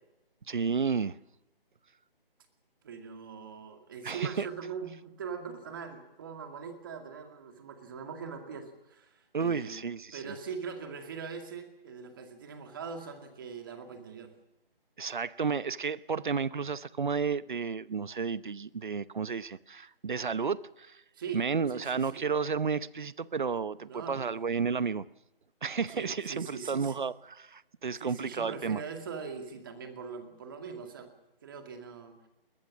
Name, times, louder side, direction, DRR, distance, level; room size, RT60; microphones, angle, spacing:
voice 1, 0.5-1.2 4.0-4.5 9.3-10.4 15.0-21.0 21.3-25.0 25.6-28.8, right 5 dB, 55° right, 0.9 m, -32 dB
voice 2, 2.8-9.8 10.1-14.3 21.1-21.4 21.7-22.2 23.8-24.3 25.9-26.9 28.0-31.1 31.4-32.3, right 6 dB, 20° right, 2.1 m, -41 dB
21.0 x 20.5 x 6.3 m
figure-of-eight pair, 170°, 29 cm